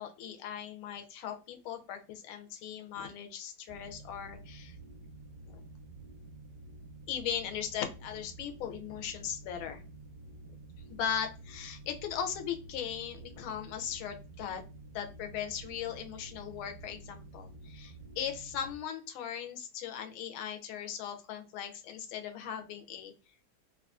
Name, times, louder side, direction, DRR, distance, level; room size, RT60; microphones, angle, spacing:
voice 1, 0.0-4.8 5.5-5.6 7.1-9.8 10.9-14.6 14.9-23.1, left 9 dB, 85° left, 6 dB, 1.4 m, -38 dB
sound 1, 3.7-18.8, right 2 dB, 70° right, 1.0 m, -50 dB
3.4 x 2.3 x 2.3 m, 0.33 s
omnidirectional pair, 2.2 m